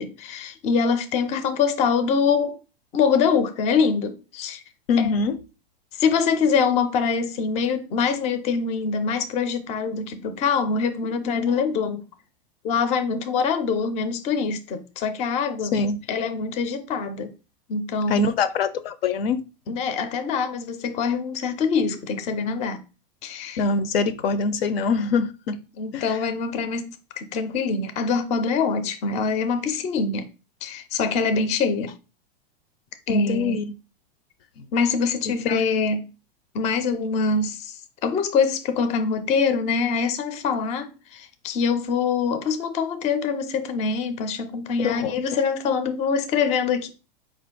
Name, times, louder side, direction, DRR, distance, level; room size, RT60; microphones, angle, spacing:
voice 1, 0.0-2.6 2.9-4.6 5.0-5.1 5.9-12.0 12.6-15.8 16.1-17.3 17.7-18.4 19.7-22.8 23.2-23.6 25.8-30.3 30.6-31.9 33.1-33.6 34.7-36.1 36.5-46.9, left 5 dB, 25° left, 0.4 m, -24 dB
voice 2, 4.9-5.4 15.7-16.0 18.1-19.4 23.6-25.6 25.9-26.2 33.1-33.7 34.6-34.7 35.5-35.6 44.8-45.1, left 4 dB, 80° left, 0.6 m, -23 dB
4.2 x 2.5 x 3.7 m
hypercardioid pair, 130°, 29 cm